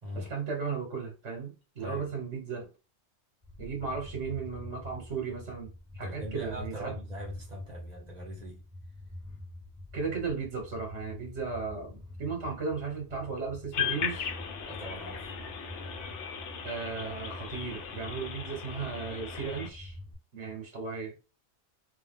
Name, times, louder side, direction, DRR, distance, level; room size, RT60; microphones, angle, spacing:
voice 1, 0.1-2.7 3.6-6.9 9.9-14.2 16.6-20.0 20.3-21.1, right 5 dB, 75° right, 1.6 m, -36 dB
sound 1, 3.4-20.1, left 1 dB, 5° right, 2.2 m, -46 dB
voice 2, 6.0-8.6 14.6-15.3, equal, 35° right, 1.6 m, -41 dB
sound 2, 13.7-19.7, left 7 dB, 90° left, 1.0 m, -37 dB
3.3 x 3.2 x 3.7 m
omnidirectional pair, 1.2 m